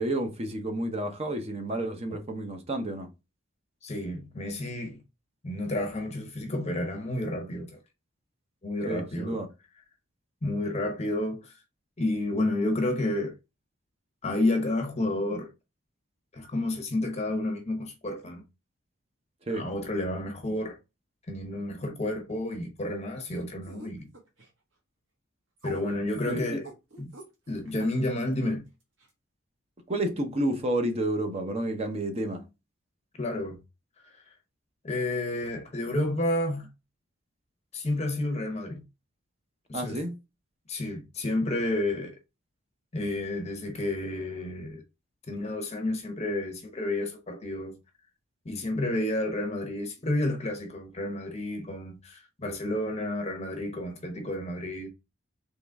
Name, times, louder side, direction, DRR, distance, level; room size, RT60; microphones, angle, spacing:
voice 1, 0.0-3.1 8.9-9.5 19.4-19.7 26.3-26.6 29.9-32.5 39.7-40.1, right 1 dB, 30° right, 0.7 m, -30 dB
voice 2, 3.8-5.0 5.4-7.8 8.6-9.4 10.4-11.5 12.0-13.3 14.2-15.5 16.3-18.4 19.5-20.8 21.3-24.1 25.6-26.7 27.0-27.1 27.5-28.6 33.2-33.6 34.0-34.2 34.8-36.7 37.7-38.8 39.7-40.0 40.7-42.2 42.9-44.8 45.3-47.8 48.4-54.9, left 1 dB, 30° left, 0.7 m, -30 dB
sound 1, 23.3-24.5 25.6-27.8 28.3-28.4 29.0-29.1, right 3 dB, 65° right, 1.3 m, -45 dB
3.7 x 3.1 x 3.4 m
head